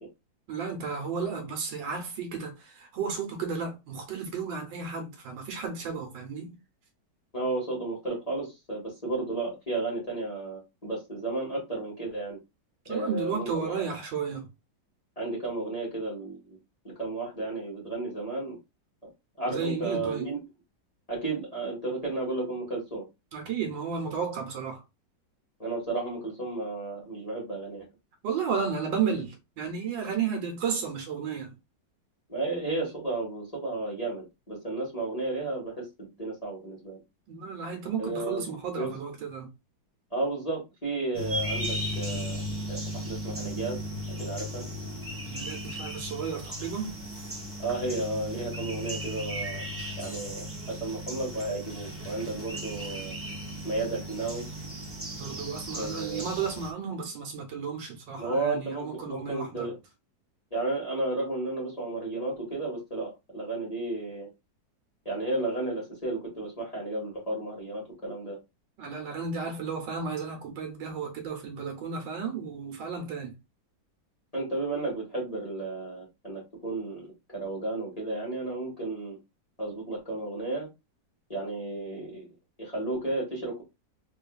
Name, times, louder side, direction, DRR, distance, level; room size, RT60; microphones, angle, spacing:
voice 1, 0.5-6.5 12.9-14.5 19.5-20.3 23.3-24.8 28.2-31.5 37.3-39.5 45.3-47.0 55.2-59.7 68.8-73.3, right 6 dB, 70° right, 1.4 m, -33 dB
voice 2, 7.3-12.4 12.9-13.8 15.2-16.6 16.8-18.6 19.4-20.4 21.1-23.0 25.6-27.9 32.3-37.0 38.0-39.0 40.1-42.4 42.7-43.8 44.2-44.7 47.6-49.6 50.0-53.1 53.6-54.4 55.8-56.3 58.2-59.8 60.5-64.3 65.0-68.4 74.3-77.1 77.3-79.2 79.6-80.7 81.3-82.3 82.6-83.6, right 2 dB, 20° left, 1.5 m, -33 dB
sound 1, 41.1-56.7, equal, 15° right, 0.5 m, -36 dB
3.6 x 3.1 x 2.3 m
omnidirectional pair, 2.1 m